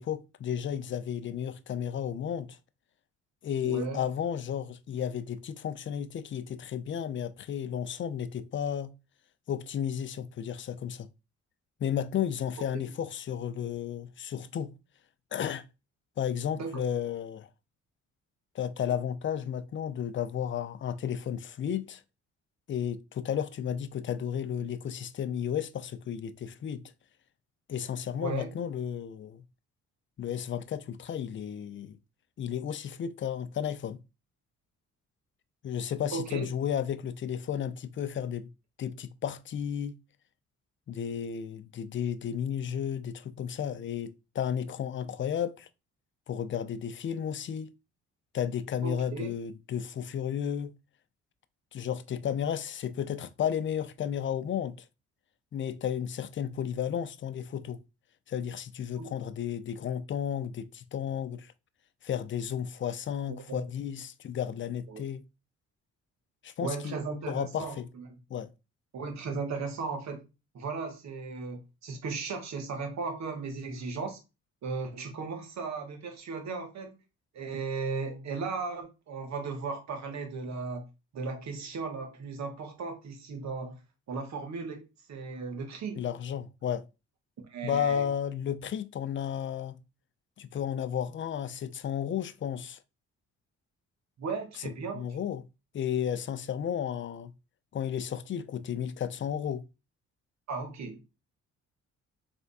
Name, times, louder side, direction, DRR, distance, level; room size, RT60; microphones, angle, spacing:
voice 1, 0.0-2.6 3.4-8.9 9.5-11.1 11.8-14.7 15.3-15.6 16.2-17.5 18.5-22.0 22.7-26.8 27.7-29.4 30.2-32.0 32.4-34.0 35.6-38.5 38.8-39.9 40.9-45.7 46.3-47.7 48.3-50.7 51.7-54.8 55.5-57.8 58.3-61.5 62.0-65.2 66.4-67.0 67.3-67.9 68.3-68.5 86.0-86.9 87.6-89.8 90.4-92.8 94.6-95.4 95.7-97.3 97.7-99.7, left 9 dB, 40° left, 0.5 m, -33 dB
voice 2, 3.6-4.0 12.7-12.9 16.6-16.8 28.2-28.5 36.1-36.5 48.8-49.4 59.0-59.1 63.3-63.6 64.9-65.0 66.6-68.1 68.9-70.2 70.5-74.2 74.6-77.0 77.3-80.9 81.1-83.8 84.1-86.0 87.5-88.1 94.2-95.1 100.5-101.0, right 4 dB, 65° right, 1.5 m, -36 dB
3.4 x 3.3 x 4.1 m
cardioid pair, 90°, 30 cm